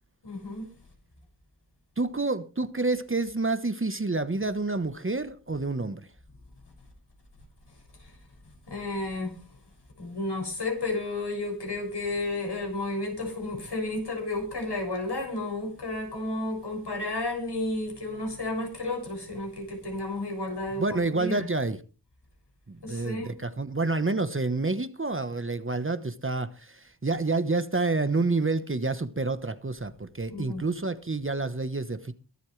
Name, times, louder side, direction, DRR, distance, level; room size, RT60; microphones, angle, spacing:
voice 1, 0.2-0.7 8.0-8.1 8.7-9.4 10.0-21.5 22.8-23.3 30.3-30.6, left 2 dB, 70° left, 6.7 m, -32 dB
voice 2, 2.0-6.1 20.7-21.8 22.7-32.1, right 3 dB, 30° right, 1.1 m, -28 dB
23.0 x 8.3 x 3.3 m
wide cardioid pair, 70°, 42 cm